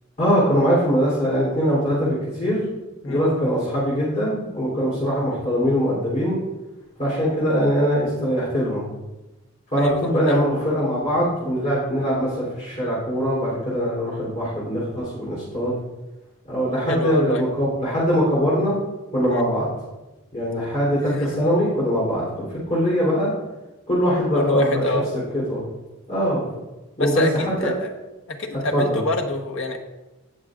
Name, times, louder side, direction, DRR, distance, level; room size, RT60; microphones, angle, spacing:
voice 1, 0.2-2.7 3.0-6.4 7.0-8.8 9.7-15.7 16.4-18.8 19.1-19.7 20.3-23.3 23.9-24.8 25.3-25.6 26.1-26.4 27.0-27.7 28.7-29.0, equal, 30° left, -8 dB, 3.3 m, -22 dB
voice 2, 9.8-10.5 16.9-17.5 19.3-19.4 21.1-21.3 24.3-25.1 27.0-27.9 28.3-29.8, left 2 dB, 65° left, 2 dB, 1.2 m, -26 dB
17.5 x 6.3 x 2.5 m, 1.0 s
head